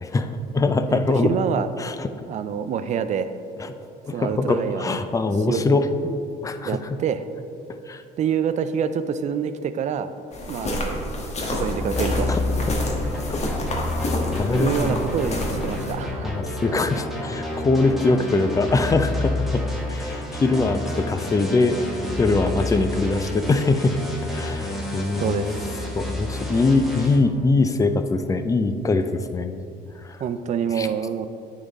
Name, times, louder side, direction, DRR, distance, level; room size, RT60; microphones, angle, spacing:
voice 1, 0.0-1.3 1.8-2.1 3.6-3.7 4.1-6.2 6.4-6.8 7.9-8.0 12.3-12.7 13.0-13.4 14.4-15.1 16.2-19.6 19.9-21.8 22.2-24.0 24.3-25.6 25.9-29.7 30.0-30.2 30.7-30.9, left 3 dB, 20° left, 9 dB, 0.4 m, -22 dB
voice 2, 0.9-1.7 2.3-3.3 4.1-5.0 5.5-5.6 6.6-7.3 8.2-10.1 10.4-12.4 14.5-16.4 22.5-22.6 25.2-25.7 30.2-31.3, right 7 dB, 45° right, 11 dB, 0.4 m, -27 dB
sound 1, 10.3-15.9, left 1 dB, 40° left, 1.4 m, -28 dB
sound 2, 11.8-27.2, left 1 dB, ahead, 1.2 m, -29 dB
9.7 x 3.9 x 4.0 m, 2.5 s
cardioid pair, 110°, 17 cm